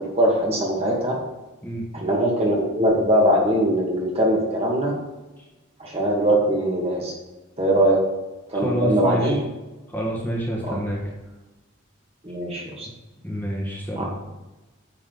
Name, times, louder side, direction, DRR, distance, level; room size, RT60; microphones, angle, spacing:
voice 1, 0.1-1.1 1.9-4.9 5.8-7.1 7.6-8.0 8.5-9.4 10.6-10.8 12.2-12.9 14.0-14.1, right 1 dB, 25° right, -2 dB, 1.8 m, -21 dB
voice 2, 8.5-9.4 9.9-11.0 13.2-14.1, equal, 10° left, -4 dB, 1.5 m, -27 dB
9.5 x 7.4 x 3.9 m, 1.1 s
head